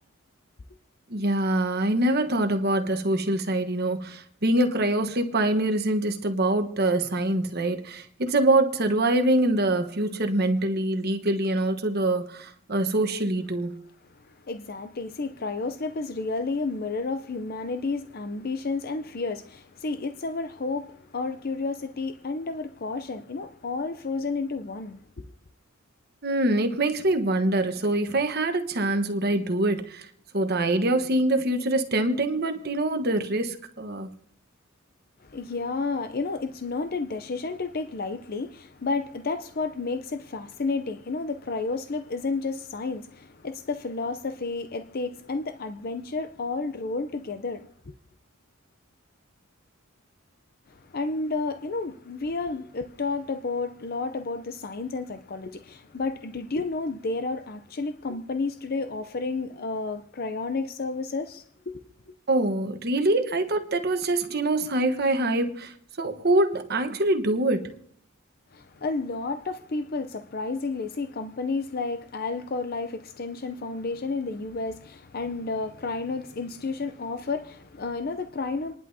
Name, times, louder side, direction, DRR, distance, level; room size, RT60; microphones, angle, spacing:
voice 1, 1.1-13.8 26.2-30.1 30.3-34.1 62.3-67.7, right 1 dB, 50° right, 1.2 m, -24 dB
voice 2, 14.1-25.3 35.2-47.9 50.7-62.1 68.5-78.8, left 3 dB, 45° left, 0.6 m, -31 dB
28.5 x 11.0 x 2.8 m
head